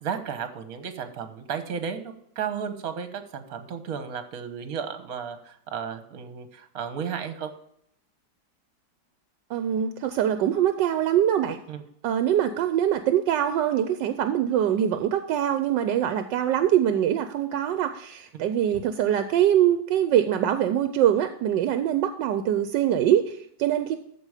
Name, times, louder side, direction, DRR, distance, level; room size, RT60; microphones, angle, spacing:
voice 1, 0.0-7.5 11.7-11.8 18.3-18.4, right 7 dB, 55° right, 8 dB, 1.5 m, -34 dB
voice 2, 9.5-11.6 12.0-24.0, right 10 dB, 75° right, 9 dB, 1.3 m, -23 dB
14.0 x 5.0 x 4.9 m, 0.72 s
omnidirectional pair, 2.0 m